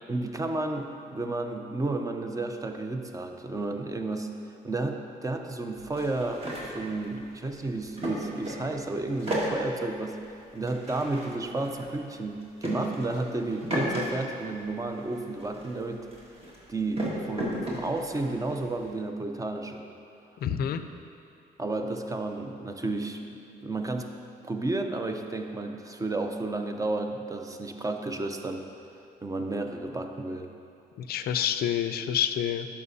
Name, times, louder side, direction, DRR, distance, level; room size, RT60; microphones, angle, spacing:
voice 1, 0.1-4.3 4.6-10.2 10.5-16.1 16.7-19.8 21.6-24.1 24.4-28.6 29.2-30.5, right 2 dB, 20° right, 5 dB, 0.5 m, -32 dB
sound 1, 5.8-8.8 9.0-14.1 14.3-18.9, equal, 35° right, 1.6 m, -35 dB
voice 2, 20.4-20.8 31.0-32.7, left 9 dB, 65° left, 10 dB, 0.4 m, -28 dB
11.0 x 5.8 x 2.7 m, 2.6 s
cardioid pair, 95°, 17 cm